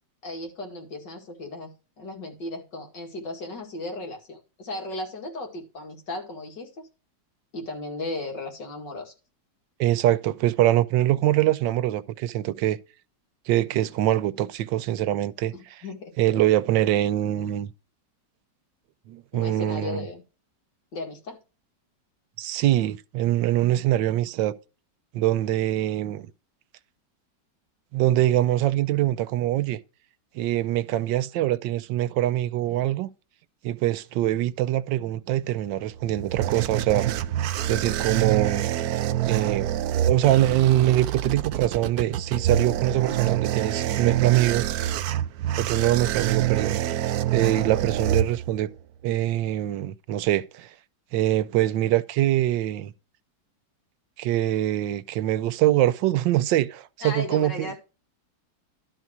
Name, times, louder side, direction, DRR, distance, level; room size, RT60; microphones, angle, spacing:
voice 1, 0.2-6.7 7.5-9.1 15.5-16.1 19.3-20.2 20.9-21.4 41.2-41.4 57.0-57.8, left 2 dB, 75° left, 2.8 m, -36 dB
voice 2, 9.8-12.8 13.5-15.5 16.2-17.7 19.1-20.0 22.4-24.6 25.1-26.3 27.9-29.8 30.3-33.1 33.6-37.0 37.7-38.6 39.2-44.7 45.6-46.8 47.3-48.7 49.0-50.7 51.1-52.9 54.2-57.7, right 13 dB, 85° right, 1.3 m, -23 dB
sound 1, 35.9-48.8, right 11 dB, 70° right, 1.0 m, -26 dB
12.0 x 4.2 x 6.1 m
omnidirectional pair, 1.9 m